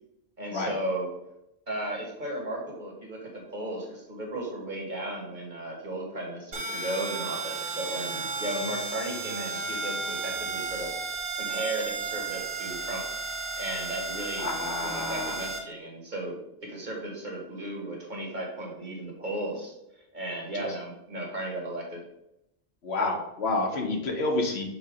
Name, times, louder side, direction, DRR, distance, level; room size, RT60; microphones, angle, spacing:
voice 1, 0.4-1.1 1.7-13.1 13.6-14.5 14.8-19.7 20.1-22.0, right 1 dB, 45° right, -1 dB, 1.6 m, -35 dB
sound 1, 6.5-15.6, right 4 dB, 80° right, 1.2 m, -34 dB
voice 2, 14.4-15.4 20.5-20.6 22.8-24.6, left 2 dB, 75° left, 1 dB, 1.4 m, -29 dB
6.5 x 2.9 x 5.0 m, 0.84 s
omnidirectional pair, 1.1 m